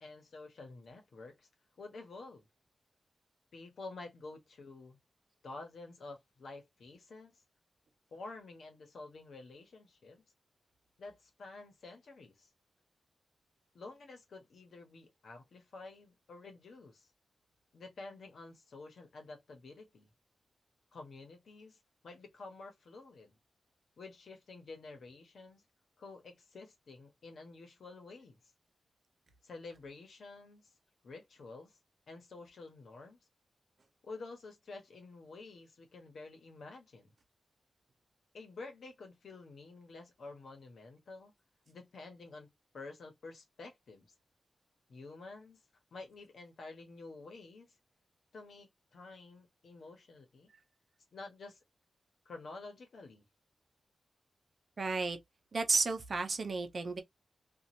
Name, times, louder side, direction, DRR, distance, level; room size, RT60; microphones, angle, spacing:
voice 1, 0.0-1.5 1.8-2.5 3.5-5.0 5.4-7.4 8.1-10.2 11.0-12.5 13.7-17.1 17.7-20.1 20.9-21.8 22.0-23.4 24.0-25.6 26.0-28.4 29.4-30.7 31.0-31.8 32.1-33.2 34.0-37.1 38.3-41.3 41.7-44.1 44.9-45.6 45.9-47.7 48.3-50.5 51.1-51.6 52.2-53.2, left 3 dB, 70° left, 1.1 m, -50 dB
voice 2, 54.8-55.2 55.5-57.0, right 4 dB, 50° right, 0.7 m, -32 dB
2.9 x 2.6 x 2.6 m
wide cardioid pair, 125°, 0 cm